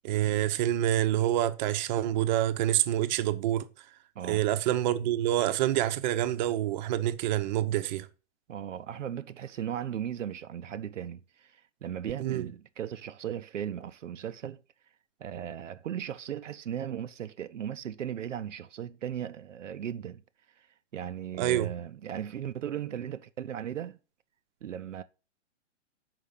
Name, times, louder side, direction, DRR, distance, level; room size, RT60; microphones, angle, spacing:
voice 1, 0.0-3.7 4.2-8.1 12.2-12.5 21.4-21.7, right 13 dB, 40° right, 0.7 m, -27 dB
voice 2, 4.2-4.5 8.5-14.6 15.2-20.2 20.6-20.7 20.9-24.0 24.6-25.0, right 9 dB, 85° right, 0.6 m, -37 dB
5.9 x 4.7 x 6.5 m
hypercardioid pair, 125°, 36 cm